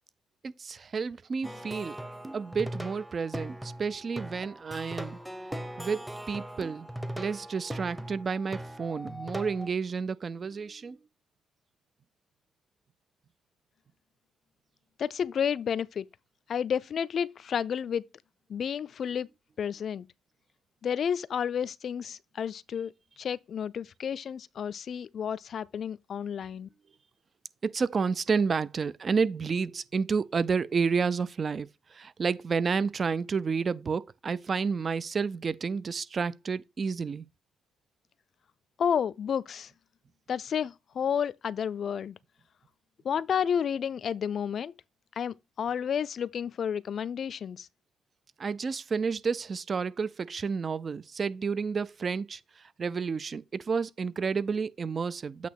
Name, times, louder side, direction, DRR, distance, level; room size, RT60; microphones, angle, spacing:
voice 1, 0.4-2.0 2.3-5.2 5.8-6.9 7.2-11.0 27.6-37.3 48.4-55.5, right 5 dB, 40° right, 0.4 m, -30 dB
Plucked string instrument, 1.4-9.7, right 1 dB, 5° right, 0.8 m, -40 dB
voice 2, 15.0-16.1 16.5-18.0 18.5-19.3 19.6-20.1 20.8-26.7 38.8-39.7 40.3-42.2 43.0-44.7 45.2-47.7, left 8 dB, 55° left, 0.4 m, -31 dB
8.3 x 2.9 x 5.9 m
cardioid pair, 90°, 0 cm